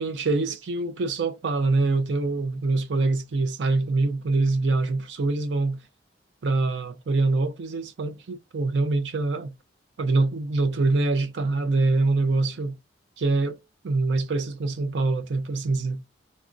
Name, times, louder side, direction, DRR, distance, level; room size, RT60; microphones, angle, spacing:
voice 1, 0.0-5.8 6.4-9.5 10.0-12.7 13.2-13.6 13.8-16.0, right 3 dB, 70° right, 0.5 m, -24 dB
3.4 x 2.1 x 2.5 m
head